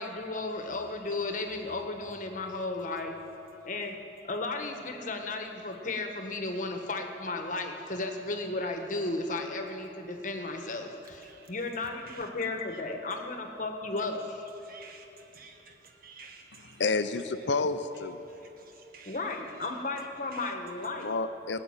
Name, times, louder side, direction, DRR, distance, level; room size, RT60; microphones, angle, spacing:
voice 1, 0.0-3.1 3.6-4.0 4.2-14.5 19.1-21.1, left 2 dB, 45° left, 1.3 m, -34 dB
voice 2, 14.6-15.7 16.2-16.3 18.2-19.2 20.3-20.4, right 5 dB, 55° right, 1.5 m, -51 dB
voice 3, 16.8-18.2 21.0-21.6, left 3 dB, 85° left, 0.6 m, -29 dB
19.5 x 6.9 x 8.8 m
head